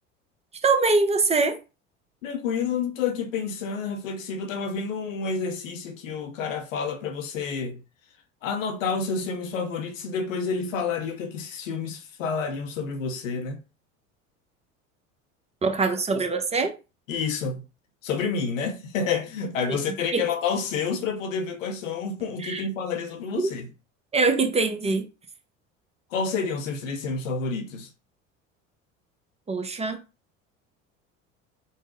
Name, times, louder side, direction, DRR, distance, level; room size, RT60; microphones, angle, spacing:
voice 1, 0.6-1.6 15.6-16.7 19.7-19.8 20.1-20.2 22.4-22.6 23.4-23.5 24.1-25.1 29.5-30.0, right 3 dB, 15° right, 0.7 m, -23 dB
voice 2, 2.2-7.8 8.4-13.6 17.1-17.7 18.0-23.7 26.1-27.9, left 5 dB, 75° left, 0.7 m, -29 dB
3.9 x 2.0 x 3.6 m
hypercardioid pair, 70°, 39 cm